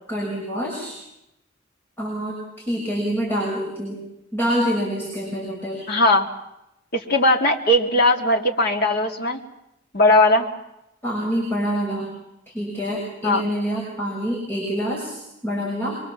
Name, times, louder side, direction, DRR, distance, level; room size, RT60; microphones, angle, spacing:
voice 1, 0.1-1.0 2.0-4.0 4.3-5.9 11.0-12.1 12.5-16.0, equal, 10° left, -3 dB, 6.4 m, -26 dB
voice 2, 5.9-6.3 6.9-9.4 9.9-10.5 13.2-13.4, left 1 dB, 55° left, 2 dB, 2.6 m, -18 dB
26.0 x 23.5 x 7.4 m, 0.85 s
head